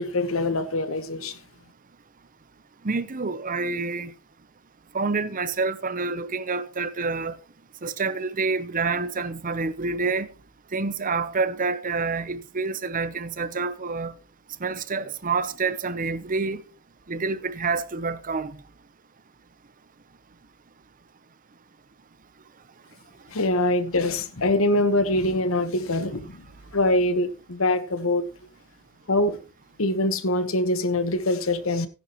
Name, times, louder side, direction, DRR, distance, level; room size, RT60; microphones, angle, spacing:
voice 1, 0.0-1.3 23.3-26.4 26.7-28.2 29.1-29.4 29.8-31.9, left 1 dB, 70° left, 1.2 m, -24 dB
voice 2, 2.8-4.1 4.9-7.4 7.8-10.3 10.7-14.1 14.6-16.6 17.1-18.6, right 4 dB, 40° right, 0.8 m, -27 dB
16.0 x 10.5 x 3.1 m
head